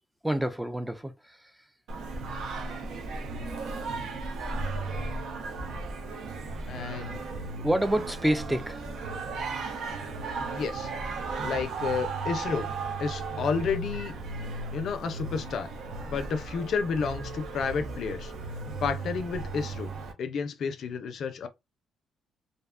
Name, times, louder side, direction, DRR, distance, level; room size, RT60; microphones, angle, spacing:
voice 1, 0.2-1.5 7.5-8.9, right 1 dB, 5° right, 0.4 m, -28 dB
Singing, 1.9-20.1, right 3 dB, 75° right, 0.7 m, -35 dB
voice 2, 6.7-7.2 10.4-10.9 11.4-12.7 13.0-14.1 14.7-15.7 16.1-18.3 18.8-19.9 20.2-21.5, left 5 dB, 65° left, 0.4 m, -31 dB
2.6 x 2.1 x 2.4 m
cardioid pair, 90°, 0 cm